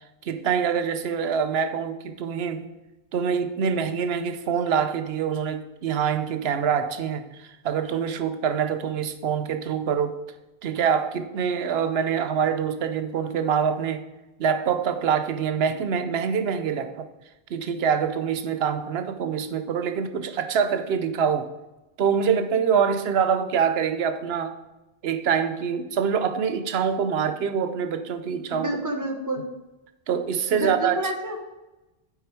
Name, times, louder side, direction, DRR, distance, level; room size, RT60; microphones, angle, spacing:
voice 1, 0.2-2.6 3.1-10.2 10.6-14.0 14.4-17.1 17.5-21.5 22.0-24.6 25.0-28.8 30.1-31.0, right 7 dB, 75° right, 9 dB, 0.9 m, -25 dB
voice 2, 28.5-29.4 30.5-31.4, right 1 dB, 20° right, 3 dB, 0.9 m, -29 dB
8.3 x 4.8 x 4.5 m, 1.0 s
omnidirectional pair, 1.1 m